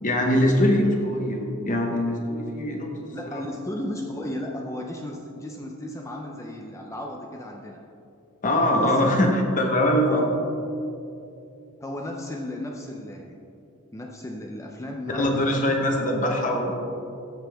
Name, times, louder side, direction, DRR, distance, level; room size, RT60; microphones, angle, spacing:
voice 1, 0.0-3.5 8.4-10.3 15.1-16.7, left 1 dB, 40° left, 1 dB, 1.0 m, -23 dB
voice 2, 3.1-7.8 8.6-9.2 10.0-10.4 11.8-13.4 13.9-15.8, left 1 dB, 15° left, 1 dB, 0.5 m, -35 dB
14.5 x 5.7 x 3.4 m, 2.7 s
head